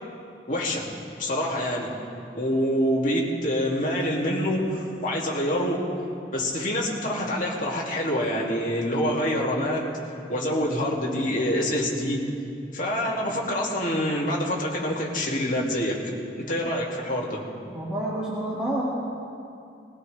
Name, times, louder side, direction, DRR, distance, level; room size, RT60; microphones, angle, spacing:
voice 1, 0.5-0.8 1.2-1.9 2.3-5.8 6.3-9.9 10.3-12.2 12.7-16.0 16.5-17.4, equal, 50° left, -4 dB, 2.3 m, -26 dB
voice 2, 17.7-18.9, right 1 dB, 5° right, -9 dB, 2.0 m, -28 dB
20.5 x 17.0 x 3.3 m, 2.5 s
head